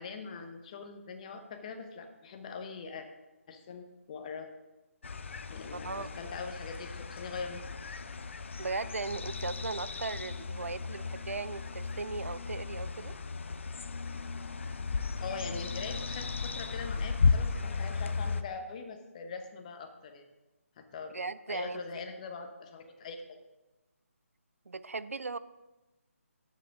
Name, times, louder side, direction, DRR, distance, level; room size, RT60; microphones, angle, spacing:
voice 1, 0.0-3.1 3.5-4.5 5.5-7.6 15.2-20.2 20.8-23.2, left 4 dB, 30° left, 6 dB, 1.0 m, -42 dB
sound 1, 5.0-18.4, left 4 dB, 55° left, 0.6 m, -35 dB
voice 2, 8.6-13.1 21.1-22.0 24.7-25.4, right 4 dB, 70° right, 16 dB, 0.5 m, -37 dB
12.0 x 7.7 x 3.6 m, 1.1 s
figure-of-eight pair, 150°, 8 cm